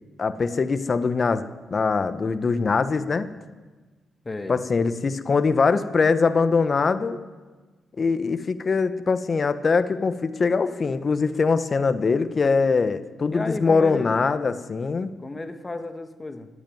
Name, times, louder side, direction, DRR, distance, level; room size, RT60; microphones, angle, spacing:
voice 1, 0.2-3.3 4.5-7.2 8.0-15.1, left 4 dB, 45° left, 12 dB, 1.1 m, -22 dB
voice 2, 4.2-4.6 13.3-14.1 15.2-16.5, left 2 dB, 30° left, 8 dB, 1.7 m, -33 dB
16.0 x 8.7 x 9.3 m, 1.3 s
hypercardioid pair, 45°, 0 cm